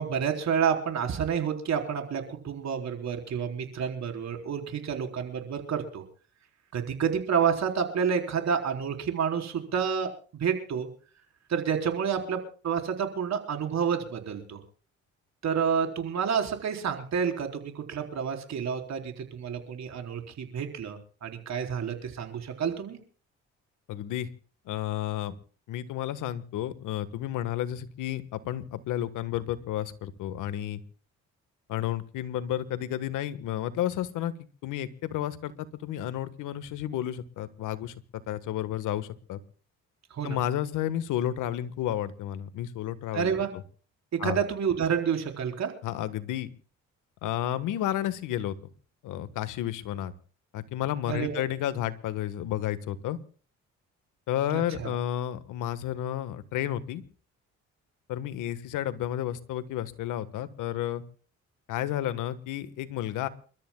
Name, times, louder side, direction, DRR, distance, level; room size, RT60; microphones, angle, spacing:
voice 1, 0.0-6.0 6.7-10.1 10.4-10.9 11.5-14.6 15.4-23.0 40.2-40.4 43.1-43.5 44.2-45.7 51.1-51.4 54.5-55.0, right 7 dB, 60° right, 4 dB, 4.1 m, -29 dB
voice 2, 23.9-24.3 24.7-25.3 25.7-30.8 31.7-34.3 34.6-37.9 38.3-39.4 40.2-43.3 44.2-44.4 45.8-46.5 47.2-48.5 49.0-50.1 50.5-53.2 54.3-57.0 58.1-61.0 61.7-63.3, left 12 dB, 90° left, 13 dB, 1.4 m, -31 dB
29.0 x 13.5 x 2.3 m, 0.41 s
cardioid pair, 90°, 30 cm